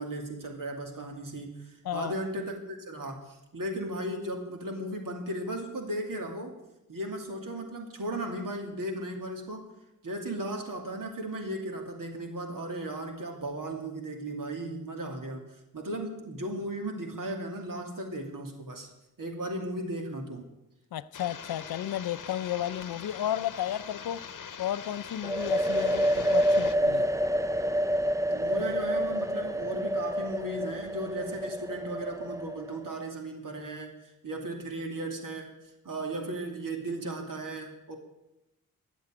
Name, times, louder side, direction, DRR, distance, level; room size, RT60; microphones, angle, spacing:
voice 1, 0.0-6.5 6.9-9.6 10.0-15.4 15.7-18.9 19.2-20.5 28.3-35.5 35.8-38.0, right 1 dB, 65° right, 2.6 m, -36 dB
voice 2, 20.9-24.2 24.6-27.0, left 11 dB, 80° left, 0.6 m, -33 dB
sound 1, 21.1-26.8, left 7 dB, 55° left, 1.0 m, -43 dB
sound 2, 25.2-32.9, equal, 10° right, 0.5 m, -28 dB
11.5 x 8.2 x 8.6 m
cardioid pair, 50°, 36 cm